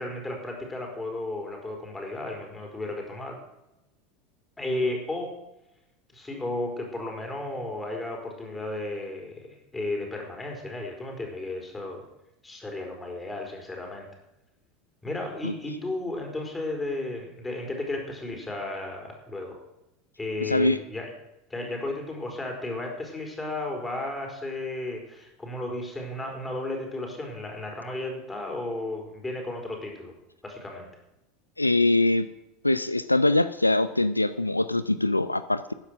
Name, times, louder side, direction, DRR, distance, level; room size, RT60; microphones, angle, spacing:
voice 1, 0.0-3.4 4.6-5.3 6.1-12.0 12.4-14.1 15.0-19.6 20.2-21.1 21.5-30.1 30.4-30.9, left 2 dB, 15° left, 2 dB, 4.4 m, -34 dB
voice 2, 20.4-20.8 31.6-32.3 32.6-35.7, left 2 dB, 90° left, 14 dB, 0.4 m, -23 dB
13.0 x 9.8 x 6.2 m, 0.91 s
figure-of-eight pair, 75°, 0 cm